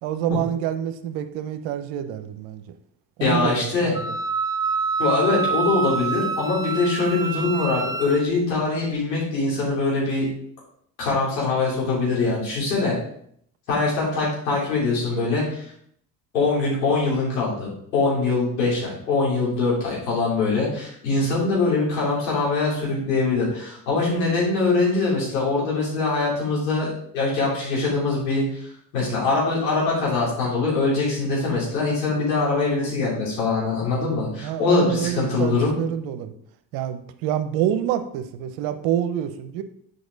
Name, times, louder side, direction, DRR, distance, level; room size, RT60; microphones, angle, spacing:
voice 1, 0.0-2.6 3.2-4.0 34.4-36.3 36.7-39.6, right 10 dB, 70° right, 10 dB, 0.9 m, -27 dB
voice 2, 3.2-3.9 5.0-10.3 11.0-13.0 13.7-15.7 16.3-35.7, left 3 dB, 85° left, -5 dB, 3.6 m, -23 dB
Wind instrument woodwind instrument, 3.9-8.2, right 5 dB, 10° right, 0.5 m, -27 dB
8.0 x 5.6 x 4.0 m, 0.67 s
hypercardioid pair, 60°, 49 cm